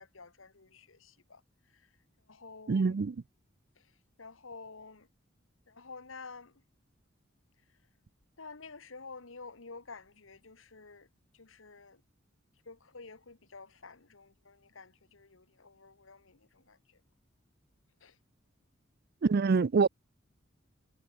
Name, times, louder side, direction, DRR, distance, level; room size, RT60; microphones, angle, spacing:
voice 1, 0.0-1.9 2.3-3.0 3.7-5.1 5.7-6.5 8.4-11.1 11.3-12.0 12.6-17.0 18.0-18.2, left 4 dB, 75° left, 1.6 m, -50 dB
voice 2, 2.7-3.2 19.2-19.9, right 4 dB, 50° right, 0.4 m, -25 dB
head